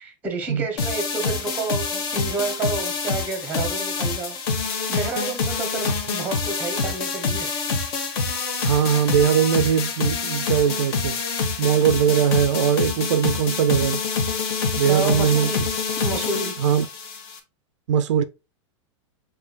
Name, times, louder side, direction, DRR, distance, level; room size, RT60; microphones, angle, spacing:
voice 1, 0.0-4.4 4.9-7.5 14.9-15.6 16.0-16.6, right 3 dB, 10° right, 0.9 m, -29 dB
sound 1, 0.8-17.4, left 4 dB, 50° left, 1.3 m, -26 dB
voice 2, 8.6-11.2 11.6-14.0 14.8-15.5 16.6-16.9 17.9-18.2, right 8 dB, 65° right, 0.5 m, -20 dB
7.1 x 2.7 x 2.2 m
supercardioid pair, 175°, 16 cm